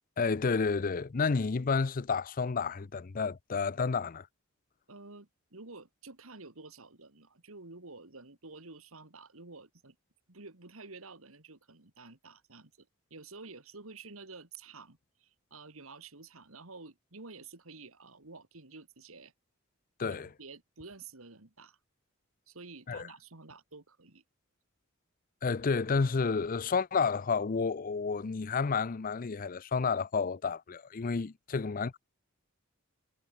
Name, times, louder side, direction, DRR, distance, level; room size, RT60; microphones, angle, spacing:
voice 1, 0.2-4.3 20.0-20.3 22.9-23.1 25.4-32.0, left 5 dB, 40° left, 0.5 m, -30 dB
voice 2, 4.9-10.0 10.3-19.3 20.1-21.8 22.5-24.2, right 3 dB, 80° right, 2.6 m, -50 dB
head